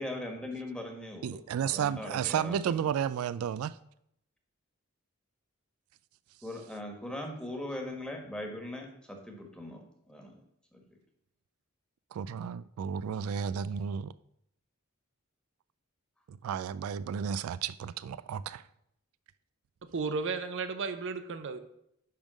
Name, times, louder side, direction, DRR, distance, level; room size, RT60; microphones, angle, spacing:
voice 1, 0.0-2.9 6.4-10.4 10.7-10.8, left 1 dB, 5° left, 1.5 m, -40 dB
voice 2, 1.2-3.8 12.1-14.1 16.3-18.6, right 8 dB, 80° right, 0.3 m, -32 dB
voice 3, 19.9-21.6, right 4 dB, 60° right, 0.7 m, -33 dB
10.5 x 3.6 x 6.3 m
head